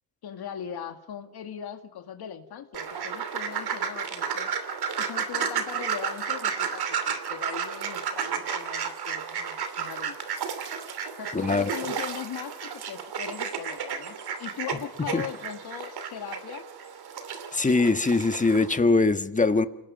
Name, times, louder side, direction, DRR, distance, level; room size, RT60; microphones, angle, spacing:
voice 1, 0.2-4.5 5.0-10.2 11.2-16.7, left 9 dB, 75° left, 5 dB, 2.1 m, -39 dB
sound 1, 2.7-18.8, right 7 dB, 75° right, 2.9 m, -32 dB
voice 2, 11.3-11.7 15.1-15.2 17.5-19.6, left 3 dB, 20° left, 9 dB, 1.4 m, -22 dB
28.5 x 19.0 x 5.2 m, 0.94 s
cardioid pair, 105°, 38 cm